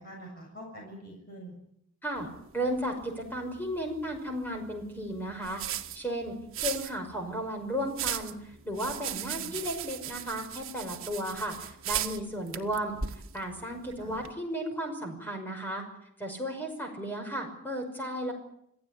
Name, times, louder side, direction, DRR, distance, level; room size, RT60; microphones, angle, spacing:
voice 1, 0.0-1.5 9.3-9.6 14.0-14.2, right 1 dB, 40° left, 0 dB, 6.9 m, -45 dB
sound 1, 2.2-14.3, right 10 dB, 65° right, 1.8 m, -39 dB
voice 2, 2.5-5.6 5.9-13.0 13.3-15.8 16.2-18.3, equal, 10° left, 3 dB, 5.7 m, -34 dB
27.0 x 16.0 x 10.0 m, 0.76 s
head